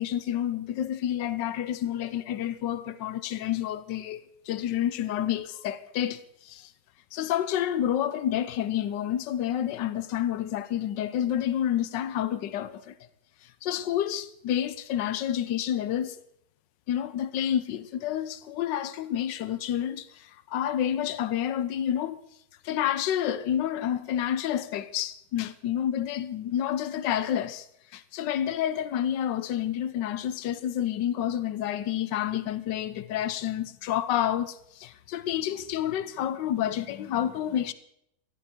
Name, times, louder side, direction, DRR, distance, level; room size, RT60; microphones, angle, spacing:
voice 1, 0.0-6.7 7.1-13.0 13.4-16.2 16.9-22.2 22.6-27.7 27.9-37.7, left 10 dB, 75° left, 1.5 m, -29 dB
19.0 x 13.5 x 4.5 m
omnidirectional pair, 2.0 m